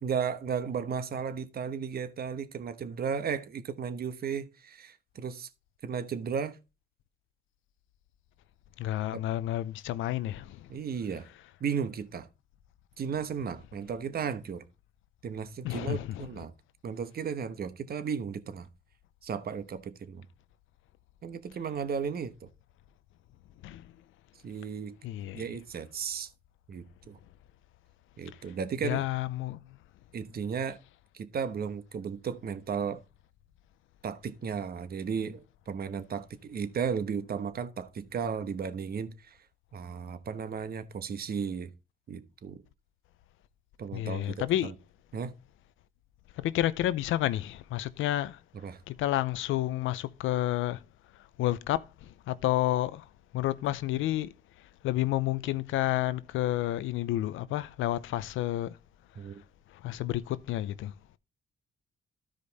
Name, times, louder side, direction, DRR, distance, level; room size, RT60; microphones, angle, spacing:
voice 1, 0.0-5.5 5.8-6.6 9.1-9.2 10.7-11.3 11.6-12.3 13.0-14.7 15.2-16.5 16.8-18.7 19.2-20.2 21.2-22.5 24.4-25.0 25.3-26.3 26.7-27.2 28.2-29.0 30.1-30.8 31.1-33.0 34.0-39.4 39.7-41.7 42.1-42.6 43.8-44.7 45.1-45.3 48.6-48.8 59.2-59.4, right 6 dB, 50° right, 1.1 m, -34 dB
voice 2, 8.8-10.7 15.6-16.3 23.6-23.9 25.0-25.4 28.8-29.6 43.9-44.7 46.4-48.4 48.9-50.8 51.4-53.0 53.3-54.3 54.8-58.8 59.7-60.9, left 14 dB, 85° left, 0.6 m, -30 dB
13.0 x 5.1 x 4.1 m
cardioid pair, 90°, 20 cm